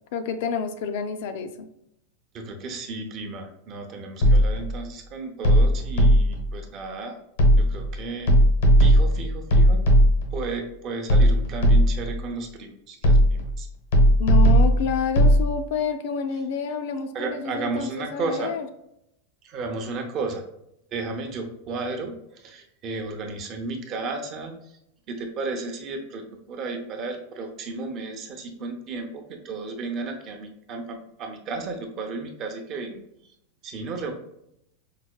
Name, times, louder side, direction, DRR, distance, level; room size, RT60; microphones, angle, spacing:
voice 1, 0.1-1.7 14.2-18.7, left 6 dB, 60° left, 8 dB, 0.4 m, -28 dB
voice 2, 2.3-7.2 7.6-8.3 8.8-9.9 10.3-13.7 17.1-18.5 19.4-20.4 20.9-24.5 25.1-33.0 33.6-34.1, right 3 dB, 35° right, 3 dB, 0.6 m, -33 dB
sound 1, 4.2-4.7 5.4-6.5 7.4-7.9 8.3-10.4 11.1-12.1 13.0-13.6 13.9-15.4, equal, 85° left, 0.9 m, -17 dB
4.7 x 2.2 x 2.2 m, 0.80 s
supercardioid pair, 155°, 0 cm